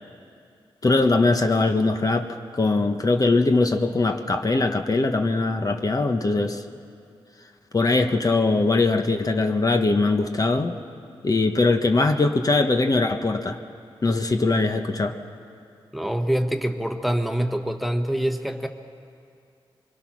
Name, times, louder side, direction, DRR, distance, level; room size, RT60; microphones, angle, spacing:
voice 1, 0.8-2.3 2.5-6.6 7.7-10.7 11.2-13.6 14.0-15.2, left 3 dB, 40° left, 5 dB, 1.2 m, -21 dB
voice 2, 15.9-18.7, right 1 dB, ahead, 6 dB, 1.3 m, -25 dB
24.5 x 22.0 x 6.2 m, 2.4 s
cardioid pair, 65°, 10 cm